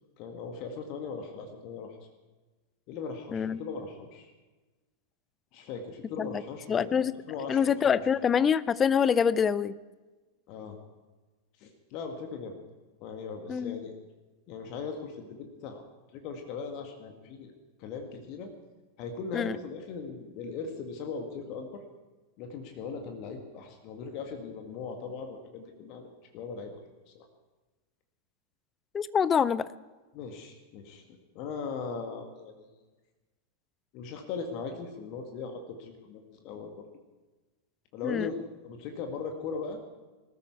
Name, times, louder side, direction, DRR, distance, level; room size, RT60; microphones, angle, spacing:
voice 1, 0.2-2.0 2.9-4.3 5.5-8.0 10.5-10.8 11.6-12.6 13.0-14.0 14.5-15.8 16.1-17.5 17.8-18.5 19.0-21.8 22.4-26.1 26.3-26.8 27.1-27.3 30.1-31.0 31.3-32.7 33.9-36.9 37.9-38.4 38.6-39.8, left 5 dB, 40° left, 4 dB, 2.0 m, -39 dB
voice 2, 6.7-7.1 7.5-9.7 13.5-13.8 19.3-19.6 28.9-29.7 38.0-38.3, left 7 dB, 20° left, 18 dB, 0.6 m, -25 dB
20.5 x 14.0 x 4.7 m, 1.2 s
figure-of-eight pair, 90°, 0 cm